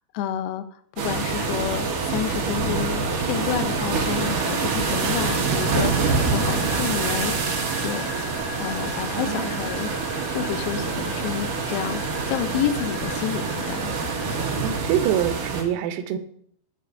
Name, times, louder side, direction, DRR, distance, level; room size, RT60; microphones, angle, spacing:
voice 1, 0.2-7.6 7.8-8.1 8.6-9.9 10.3-13.9, left 10 dB, 90° left, 9 dB, 3.5 m, -30 dB
sound 1, 1.0-15.6, right 4 dB, 60° right, 2.4 m, -26 dB
sound 2, 4.1-14.8, left 5 dB, 70° left, 1.5 m, -40 dB
voice 2, 9.1-9.6 14.6-16.2, right 10 dB, 90° right, 9 dB, 3.5 m, -25 dB
18.0 x 9.0 x 2.6 m, 0.66 s
omnidirectional pair, 6.0 m